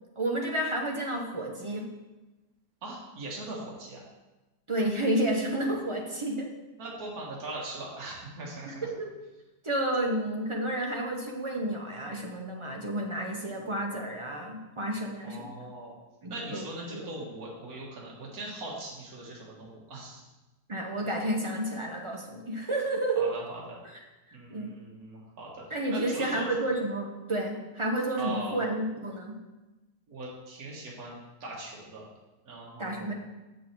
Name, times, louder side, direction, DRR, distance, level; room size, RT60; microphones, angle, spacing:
voice 1, 0.2-1.9 4.7-6.5 8.7-9.1 9.6-15.5 16.2-16.6 16.9-17.0 20.7-23.3 24.5-24.7 25.7-29.4 32.8-33.1, right 1 dB, 40° right, 0 dB, 0.4 m, -31 dB
voice 2, 2.8-4.0 6.8-8.9 15.2-16.0 16.3-20.3 23.2-23.8 24.3-25.6 25.9-26.4 28.2-28.5 30.1-32.1 32.4-33.1, right 2 dB, 60° right, -4 dB, 2.0 m, -40 dB
6.9 x 6.4 x 4.5 m, 1.1 s
omnidirectional pair, 1.8 m